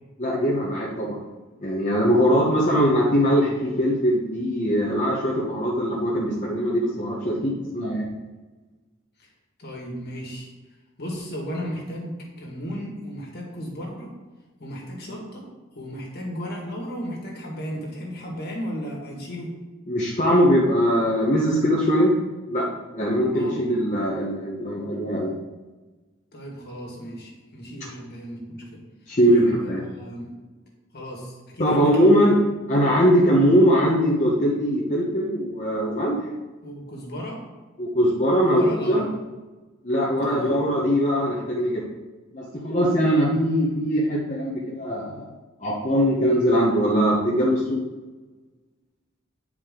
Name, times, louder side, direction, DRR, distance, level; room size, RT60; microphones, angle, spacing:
voice 1, 0.2-1.2 1.6-8.1 19.9-22.1 22.5-22.7 22.9-25.3 29.1-29.8 31.6-32.4 32.7-36.2 37.8-39.1 39.8-41.8 42.3-45.3 45.6-47.8, equal, 35° left, -5 dB, 1.0 m, -21 dB
voice 2, 9.6-10.5 11.0-14.1 14.6-15.5 15.7-19.5 23.3-23.7 26.3-28.8 29.2-30.3 30.9-32.2 36.6-37.4 38.4-39.1 40.1-40.5, equal, 55° left, -2 dB, 2.0 m, -34 dB
9.2 x 4.9 x 3.8 m, 1.2 s
head